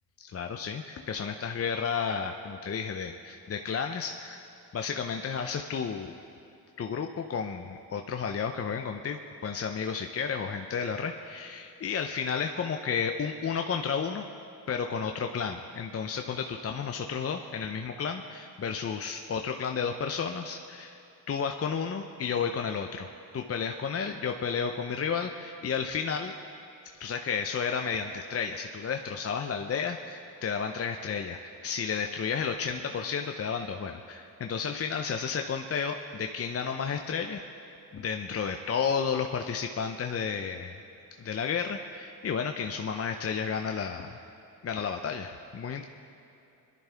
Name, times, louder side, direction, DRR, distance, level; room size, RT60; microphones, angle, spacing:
voice 1, 0.2-4.5 4.7-6.1 6.8-14.3 14.7-21.0 21.3-26.3 27.0-37.4 37.9-40.7 41.2-44.2 44.6-45.8, left 6 dB, 35° left, 4 dB, 0.7 m, -32 dB
21.5 x 11.0 x 3.5 m, 2.8 s
cardioid pair, 75°, 39 cm